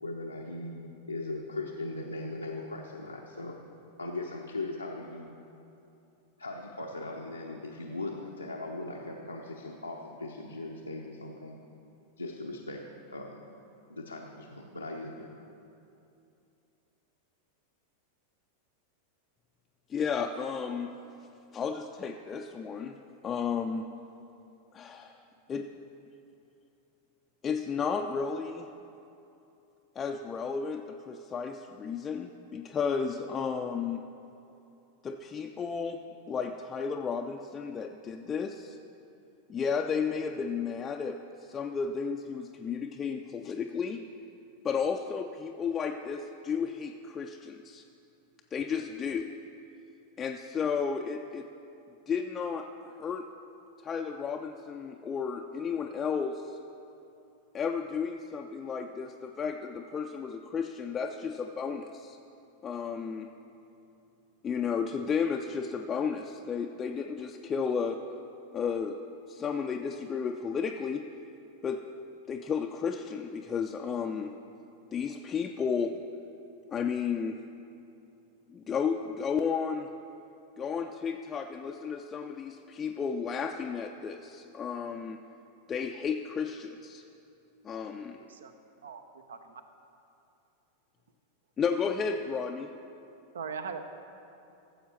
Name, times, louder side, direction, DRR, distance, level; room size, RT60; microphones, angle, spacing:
voice 1, 0.0-3.6 4.0-5.3 6.4-11.6 12.2-13.4 13.9-15.3, left 2 dB, 85° left, -1 dB, 0.6 m, -39 dB
voice 2, 19.9-21.0 21.5-23.9 24.7-25.2 25.5-25.7 27.4-28.7 30.0-34.0 35.0-36.0 36.3-38.8 39.5-44.0 44.6-47.8 48.5-49.3 50.2-51.5 52.1-53.3 53.8-56.6 57.5-62.2 62.6-63.3 64.4-68.0 68.5-69.0 69.3-71.0 71.6-71.8 72.3-74.3 74.9-75.9 76.7-77.4 78.5-79.9 80.6-85.2 85.7-87.0 87.6-88.2 91.6-92.7, left 6 dB, 25° left, 3 dB, 0.4 m, -33 dB
voice 3, 88.1-88.5 88.8-89.6 93.3-93.8, right 6 dB, 65° right, 9 dB, 0.6 m, -40 dB
14.5 x 7.3 x 4.3 m, 2.8 s
figure-of-eight pair, 90°, 0 cm